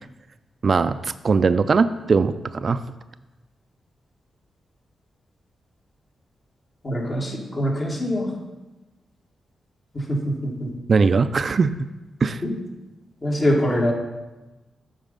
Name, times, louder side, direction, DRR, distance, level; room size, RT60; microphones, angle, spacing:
voice 1, 0.6-2.8 10.9-11.7 12.2-12.4, right 4 dB, 55° right, 12 dB, 0.3 m, -20 dB
voice 2, 6.8-8.3 10.3-10.7 12.4-12.5 13.2-13.9, equal, 45° left, -2 dB, 2.1 m, -23 dB
8.0 x 4.1 x 5.4 m, 1.1 s
supercardioid pair, 45°, 0 cm